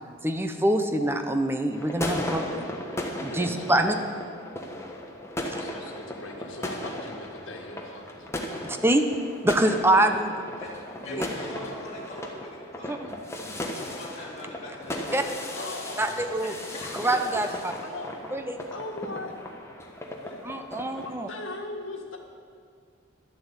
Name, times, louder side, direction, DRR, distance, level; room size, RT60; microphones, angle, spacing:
voice 1, 0.2-2.7 3.2-3.9 5.5-5.6 8.6-9.0 9.4-10.3 11.2-11.3 12.9-13.0 15.1-15.2 16.0-16.5 17.0-17.7 18.3-18.6 20.4-21.3, right 1 dB, 10° right, 6 dB, 0.7 m, -25 dB
sound 1, 1.7-21.2, left 1 dB, 15° left, 1.1 m, -36 dB
voice 2, 3.2-4.0 5.4-8.7 9.5-9.6 11.0-11.7 13.0-13.7 15.5-17.4 17.8-18.2 18.7-19.4 20.2-20.6 20.9-22.2, left 2 dB, 70° left, 2 dB, 1.8 m, -40 dB
voice 3, 11.0-13.0 13.7-15.5 16.4-17.5, left 1 dB, 35° left, -6 dB, 2.7 m, -42 dB
12.0 x 7.7 x 8.3 m, 2.2 s
head